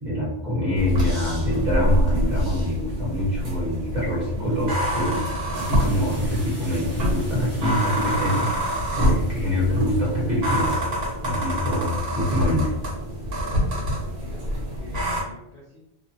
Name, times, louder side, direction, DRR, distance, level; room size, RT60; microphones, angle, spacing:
voice 1, 0.0-5.2 5.5-12.7, left 1 dB, 40° right, -6 dB, 1.1 m, -25 dB
sound 1, 0.7-15.2, equal, 65° right, 1.1 m, -26 dB
sound 2, 5.5-10.6, equal, 20° right, 0.4 m, -43 dB
voice 2, 13.3-15.8, left 1 dB, 45° left, -6 dB, 0.6 m, -47 dB
2.8 x 2.5 x 2.5 m, 0.84 s
omnidirectional pair, 1.1 m